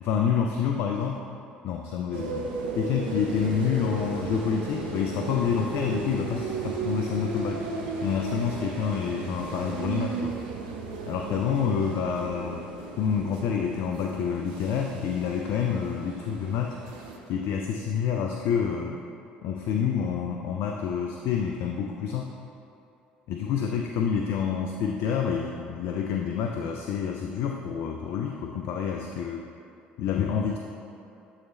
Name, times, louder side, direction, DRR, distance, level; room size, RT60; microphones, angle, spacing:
voice 1, 0.0-1.2 1.6-2.5 2.8-7.7 8.0-10.4 11.1-12.6 13.0-16.8 17.3-19.0 19.4-22.3 23.3-29.5 30.0-30.6, left 7 dB, 60° left, 2 dB, 0.4 m, -28 dB
sound 1, 2.1-17.2, right 4 dB, 80° right, 0.6 m, -35 dB
sound 2, 3.0-10.2, right 1 dB, 60° right, 1.5 m, -51 dB
7.7 x 3.2 x 4.1 m, 2.7 s
hypercardioid pair, 60°, 5 cm